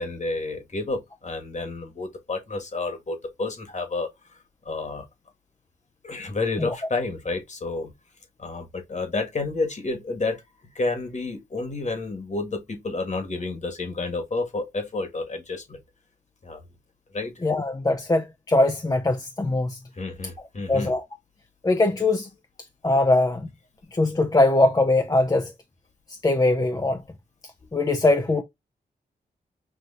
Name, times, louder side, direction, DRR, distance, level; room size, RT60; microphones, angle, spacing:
voice 1, 0.0-4.4 4.6-5.0 6.0-7.9 8.4-10.4 10.7-15.8 16.4-16.6 17.1-17.3 19.9-20.9, left 3 dB, 45° left, 1.5 m, -30 dB
voice 2, 17.4-19.8 20.7-21.0 21.6-22.3 22.8-23.5 23.9-25.5 26.1-27.0 27.7-28.4, left 2 dB, 20° left, 0.5 m, -21 dB
6.3 x 2.7 x 2.4 m
cardioid pair, 70°, 17 cm